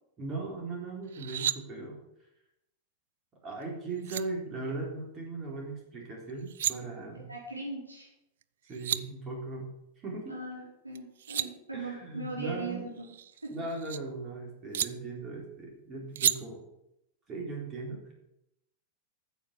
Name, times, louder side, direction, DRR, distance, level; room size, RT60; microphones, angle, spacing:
voice 1, 0.2-2.0 3.4-7.3 8.7-9.7 10.0-10.3 11.7-12.9 13.5-16.6 17.3-18.1, right 3 dB, 25° right, -1 dB, 3.8 m, -38 dB
sound 1, 1.1-1.6 3.6-3.7 4.0-4.2 6.3-6.7 8.4-8.5 8.7-9.0 10.9-11.5 13.0-14.0 14.7-14.9 16.2-16.4, right 11 dB, 60° right, 0.4 m, -31 dB
voice 2, 7.1-8.1 10.3-13.1 13.4-13.5, right 2 dB, 85° right, -4 dB, 4.6 m, -39 dB
9.4 x 7.0 x 7.4 m, 0.83 s
figure-of-eight pair, 90°, 0 cm